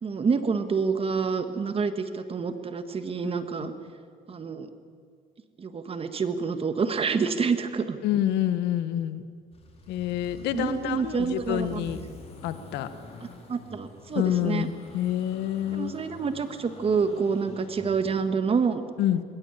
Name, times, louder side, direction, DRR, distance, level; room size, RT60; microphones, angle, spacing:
voice 1, 0.0-3.7 4.3-4.7 5.6-8.0 10.5-11.9 13.5-14.7 15.7-18.8, right 5 dB, 35° right, 10 dB, 1.6 m, -27 dB
voice 2, 8.0-9.2 9.9-12.0 12.4-12.9 14.1-16.1 19.0-19.2, left 11 dB, 85° left, 12 dB, 1.2 m, -27 dB
sound 1, 9.5-18.2, left 3 dB, 35° left, 4.3 m, -47 dB
20.5 x 17.0 x 9.0 m, 2.2 s
cardioid pair, 110°, 17 cm